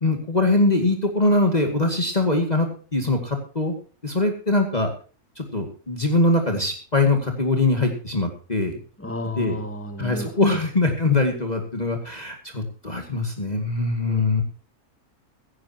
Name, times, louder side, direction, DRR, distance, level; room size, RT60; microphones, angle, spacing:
voice 1, 0.0-3.7 4.0-4.9 5.4-8.8 9.4-9.6 10.0-14.4, left 2 dB, 25° left, 3 dB, 2.3 m, -22 dB
voice 2, 9.0-10.6 14.1-14.4, left 2 dB, 10° left, 5 dB, 2.4 m, -33 dB
16.5 x 16.0 x 2.9 m, 0.38 s
omnidirectional pair, 1.7 m